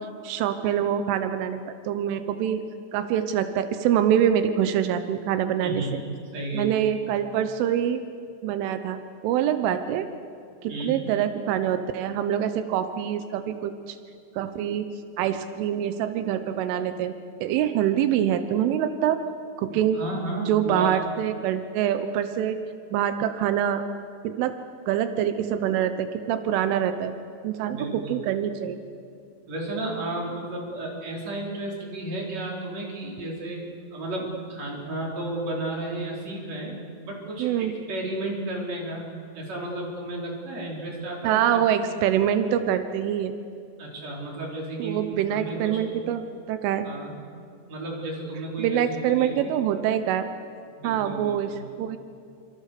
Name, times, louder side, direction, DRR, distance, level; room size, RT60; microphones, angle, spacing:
voice 1, 0.2-2.6 2.9-5.8 6.5-8.0 8.4-9.0 9.2-10.1 10.6-14.0 14.4-14.9 15.2-17.1 17.4-19.2 19.6-20.0 20.5-22.6 22.9-23.8 24.2-24.5 24.9-27.1 27.4-28.8 37.4-37.7 41.2-43.3 44.8-46.2 46.5-46.9 48.6-50.3 50.8-51.5 51.8-52.0, right 10 dB, 90° right, 9 dB, 3.5 m, -25 dB
voice 2, 5.6-5.9 6.3-6.7 10.7-11.0 19.7-21.0 27.7-28.2 29.5-33.6 33.9-36.7 37.0-39.1 39.3-41.6 43.8-45.8 46.8-47.1 47.7-49.6 50.8-51.6, right 2 dB, 35° right, -2 dB, 5.7 m, -33 dB
29.0 x 26.0 x 6.8 m, 2.4 s
omnidirectional pair, 5.5 m